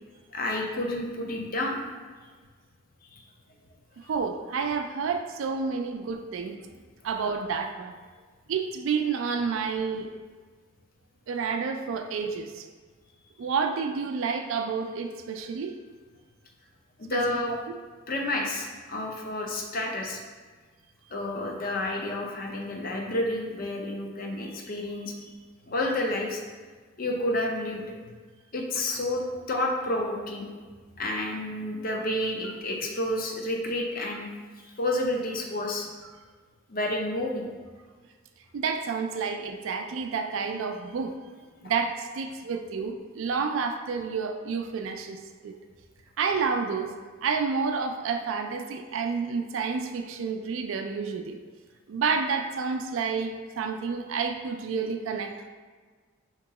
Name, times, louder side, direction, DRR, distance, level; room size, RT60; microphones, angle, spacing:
voice 1, 0.3-1.8 3.1-3.2 17.0-17.5 18.1-20.2 21.1-25.2 25.7-26.4 27.0-28.0 28.5-30.5 31.0-34.3 34.8-35.9 36.7-37.5 39.1-39.3, left 1 dB, 45° left, 1 dB, 0.6 m, -30 dB
voice 2, 4.1-6.6 7.0-7.9 8.5-10.1 11.3-12.7 13.4-15.7 17.1-17.4 38.5-41.1 41.6-45.5 46.2-46.9 47.2-51.4 51.9-55.5, right 5 dB, 70° right, 5 dB, 0.4 m, -29 dB
3.7 x 2.9 x 4.7 m, 1.4 s
head